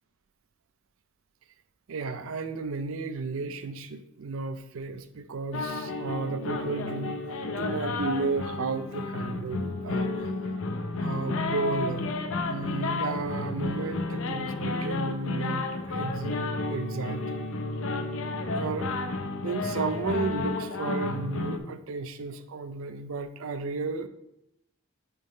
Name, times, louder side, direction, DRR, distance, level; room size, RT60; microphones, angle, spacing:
voice 1, 1.9-7.2 7.5-10.3 11.0-12.2 12.5-17.4 18.6-19.1 19.4-24.1, right 3 dB, 70° right, 10 dB, 0.5 m, -33 dB
sound 1, 5.5-21.6, left 3 dB, 65° left, 0.6 m, -31 dB
9.1 x 3.5 x 3.2 m, 0.84 s
head